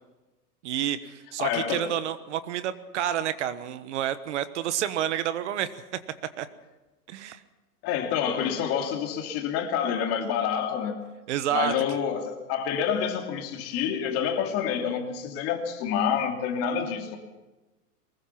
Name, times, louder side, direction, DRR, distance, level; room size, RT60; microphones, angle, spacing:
voice 1, 0.6-5.7 6.4-6.5 7.1-7.4 11.3-11.7, right 11 dB, 45° right, 1.3 m, -29 dB
voice 2, 1.4-2.0 7.8-11.0 11.5-17.2, left 8 dB, 30° left, 2.8 m, -28 dB
23.5 x 21.0 x 5.8 m
hypercardioid pair, 150°, 47 cm